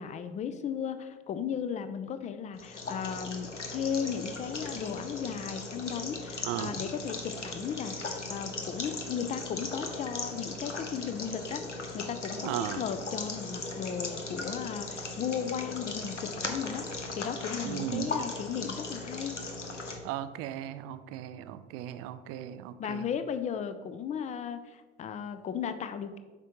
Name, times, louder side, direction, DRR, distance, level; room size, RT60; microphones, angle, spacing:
voice 1, 0.0-11.7 11.9-19.5 22.8-26.2, left 7 dB, 20° left, 11 dB, 0.4 m, -36 dB
sound 1, 2.5-20.0, left 3 dB, 90° left, 0.6 m, -38 dB
voice 2, 6.4-6.8 12.4-12.8 17.6-18.1 20.0-23.1, right 12 dB, 40° right, 13 dB, 0.4 m, -36 dB
7.3 x 5.1 x 3.0 m, 1.3 s
figure-of-eight pair, 65°, 35 cm